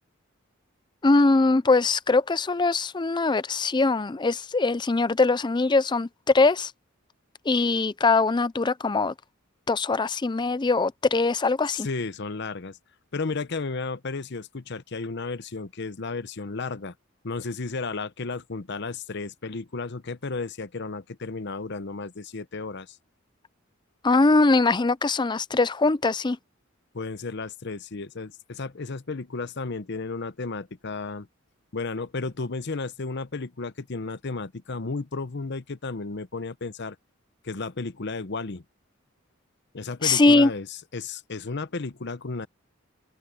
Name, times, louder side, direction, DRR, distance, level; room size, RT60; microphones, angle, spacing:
voice 1, 1.0-6.7 7.5-9.1 9.7-11.9 24.0-26.4 40.0-40.5, left 3 dB, 20° left, 0.5 m, -22 dB
voice 2, 11.8-12.8 13.1-16.9 17.2-23.0 26.9-31.3 31.7-37.0 37.4-38.6 39.7-40.7 40.9-42.5, left 3 dB, 55° left, 0.8 m, -33 dB
open air
head